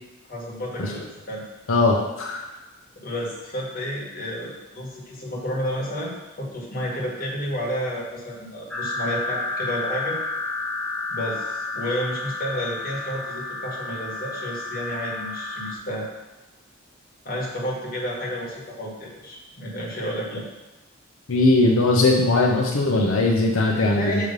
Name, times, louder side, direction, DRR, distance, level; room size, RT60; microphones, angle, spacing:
voice 1, 0.3-1.4 3.0-10.2 11.1-16.1 17.2-20.5 23.9-24.3, equal, 45° left, -4 dB, 1.5 m, -31 dB
voice 2, 1.7-2.4 21.3-24.3, left 2 dB, 85° left, -2 dB, 0.7 m, -19 dB
sound 1, 8.7-15.8, left 2 dB, 5° left, 0.4 m, -31 dB
6.7 x 3.2 x 5.2 m, 1.1 s
head